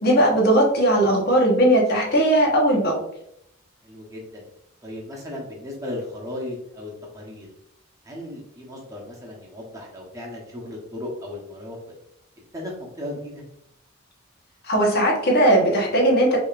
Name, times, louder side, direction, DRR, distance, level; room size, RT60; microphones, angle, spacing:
voice 1, 0.0-3.0 14.6-16.4, right 1 dB, 50° left, -1 dB, 1.1 m, -18 dB
voice 2, 3.8-4.4 4.8-7.5 8.0-11.8 12.5-13.4, left 1 dB, 15° right, -3 dB, 1.0 m, -36 dB
5.0 x 3.0 x 2.4 m, 0.77 s
head